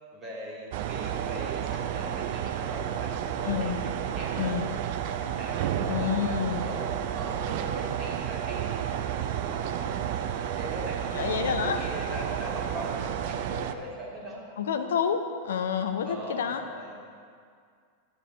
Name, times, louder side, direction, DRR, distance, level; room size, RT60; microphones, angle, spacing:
voice 1, 0.1-4.6 5.3-14.5 16.0-17.0, equal, 25° right, -4 dB, 2.1 m, -40 dB
sound 1, 0.7-13.7, right 10 dB, 50° right, 0.4 m, -31 dB
voice 2, 3.5-3.8 4.4-4.7 5.9-6.6 11.1-11.8 14.6-15.2 15.4-16.6, left 7 dB, 60° left, 8 dB, 0.4 m, -28 dB
11.5 x 8.5 x 2.7 m, 2.1 s
figure-of-eight pair, 90°, 0 cm